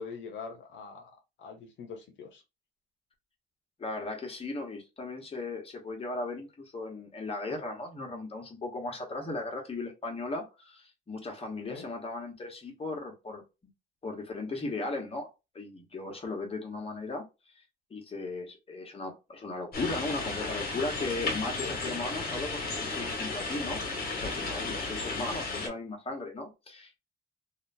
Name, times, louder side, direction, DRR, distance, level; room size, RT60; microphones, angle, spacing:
voice 1, 0.0-2.4 11.7-11.8 21.6-21.8, left 5 dB, 70° left, 0.6 m, -43 dB
voice 2, 3.8-13.4 14.0-15.3 15.5-17.6 17.9-27.0, left 2 dB, 30° left, 1.0 m, -37 dB
sound 1, 19.7-25.7, left 3 dB, 50° left, 1.2 m, -34 dB
2.8 x 2.2 x 2.5 m
cardioid pair, 90°, 20 cm